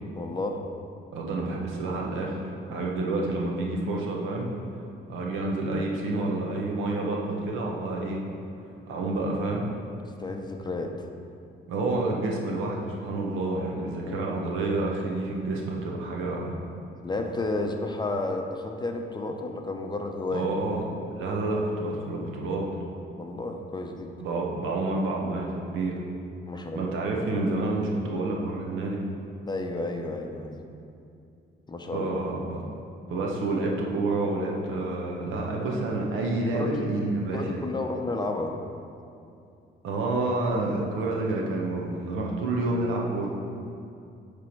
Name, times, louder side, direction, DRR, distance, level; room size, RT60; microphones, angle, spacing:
voice 1, 0.1-0.6 2.7-2.9 10.2-10.9 14.0-14.3 17.0-20.6 23.2-24.1 26.4-26.9 29.5-30.6 31.7-32.1 36.5-36.8 37.3-38.6, left 2 dB, 20° left, 3 dB, 0.6 m, -32 dB
voice 2, 1.1-2.4 2.7-4.5 5.1-8.2 8.9-9.7 11.7-16.6 20.3-22.7 24.2-26.0 26.7-29.1 31.9-32.7 33.1-37.7 39.8-43.3, right 2 dB, 85° right, -1 dB, 1.0 m, -29 dB
9.4 x 3.4 x 4.5 m, 2.5 s
cardioid pair, 90°, 20 cm